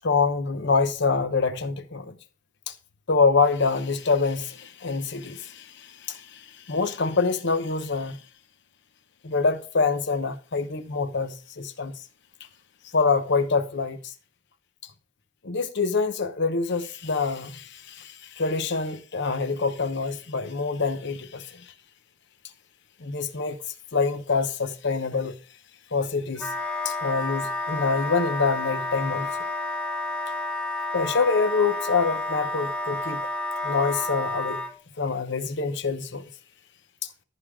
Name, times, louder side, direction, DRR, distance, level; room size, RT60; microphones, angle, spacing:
voice 1, 0.0-2.2 2.7-2.8 3.1-8.2 9.2-11.9 12.9-14.1 15.4-21.7 23.0-25.4 25.9-26.5 26.8-29.4 30.9-33.2 33.6-34.6 35.0-36.3 37.0-37.1, left 4 dB, 60° left, 0.9 m, -26 dB
Wind instrument woodwind instrument, 26.4-34.7, left 2 dB, 5° left, 0.9 m, -30 dB
14.5 x 5.0 x 3.6 m
head